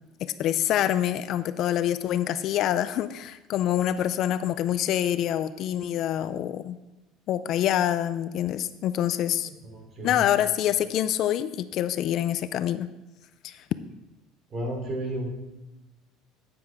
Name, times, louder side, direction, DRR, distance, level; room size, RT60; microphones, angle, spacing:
voice 1, 0.2-6.8 7.3-9.5 10.0-12.9 13.4-13.6, left 11 dB, 50° left, 13 dB, 0.4 m, -26 dB
voice 2, 9.7-10.2 14.5-15.3, right 1 dB, 35° right, 1 dB, 3.3 m, -32 dB
9.7 x 9.4 x 3.6 m, 1.0 s
cardioid pair, 135°, 0 cm